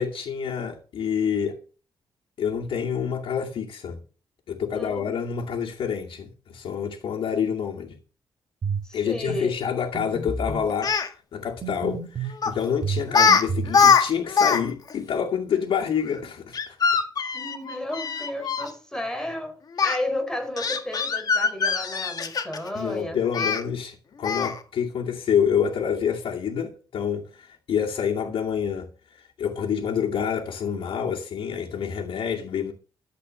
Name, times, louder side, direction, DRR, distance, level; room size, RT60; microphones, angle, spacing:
voice 1, 0.0-1.6 2.4-4.0 4.5-8.0 8.9-10.9 11.3-16.8 22.7-28.9 29.4-32.7, left 7 dB, 80° left, 2.4 m, -27 dB
voice 2, 4.7-5.2 8.8-9.6 17.3-19.6 19.8-23.5, left 1 dB, 5° left, 4.2 m, -33 dB
sound 1, 8.6-8.9 9.3-9.4 9.9-10.7 11.6-12.4 12.8-13.8, right 5 dB, 45° right, 2.4 m, -30 dB
Speech, 10.7-11.1 12.4-12.6 13.1-13.4 13.7-14.6 14.9-15.0 16.5-18.7 19.8-20.0 20.6-22.7 23.3-23.6 24.2-24.6, left 6 dB, 45° left, 1.9 m, -22 dB
13.0 x 8.1 x 6.4 m
cardioid pair, 125°, 9 cm